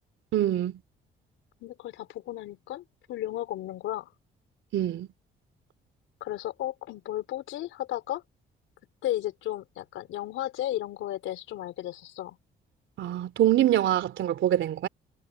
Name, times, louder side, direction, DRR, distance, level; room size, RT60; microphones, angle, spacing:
voice 1, 0.3-0.8 4.7-5.1 13.0-14.9, right 12 dB, 75° right, 3.1 m, -24 dB
voice 2, 1.6-4.1 6.2-8.2 9.0-12.4, left 13 dB, 90° left, 4.1 m, -34 dB
cardioid pair, 90°, 20 cm